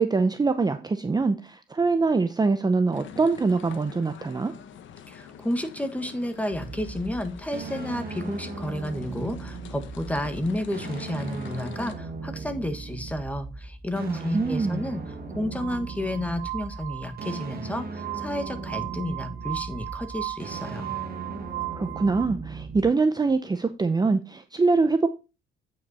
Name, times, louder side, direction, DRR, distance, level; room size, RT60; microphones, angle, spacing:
voice 1, 0.0-4.5 14.1-14.8 21.7-25.1, right 4 dB, 20° right, 0.6 m, -24 dB
sound 1, 2.9-12.0, left 8 dB, 75° left, 1.1 m, -45 dB
voice 2, 5.1-20.9, left 1 dB, 5° left, 1.4 m, -31 dB
sound 2, 6.5-22.9, right 4 dB, 50° right, 2.4 m, -38 dB
Glass, 15.5-22.3, right 18 dB, 80° right, 0.8 m, -37 dB
9.0 x 5.4 x 4.2 m
cardioid pair, 90°, 20 cm